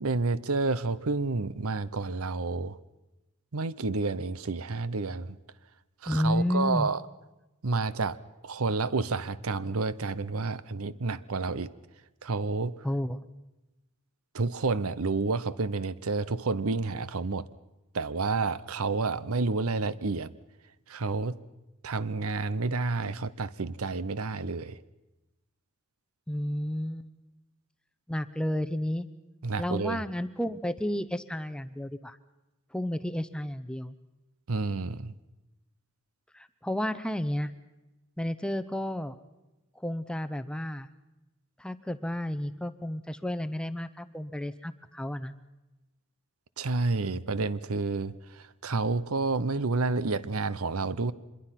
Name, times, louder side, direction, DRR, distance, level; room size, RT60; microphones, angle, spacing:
voice 1, 0.0-2.8 3.5-5.4 6.0-7.0 7.6-8.2 8.4-11.7 12.2-12.9 14.3-17.5 17.9-20.3 20.9-21.4 21.8-24.8 29.4-30.0 34.5-35.1 46.6-51.1, right 3 dB, 75° right, 17 dB, 0.8 m, -30 dB
voice 2, 6.1-6.9 12.8-13.2 26.3-27.1 28.1-29.1 29.6-32.2 32.7-34.0 36.3-37.5 38.2-39.2 39.8-40.9 41.6-45.3, left 1 dB, 5° left, 10 dB, 0.7 m, -31 dB
25.0 x 22.0 x 5.9 m, 1.0 s
head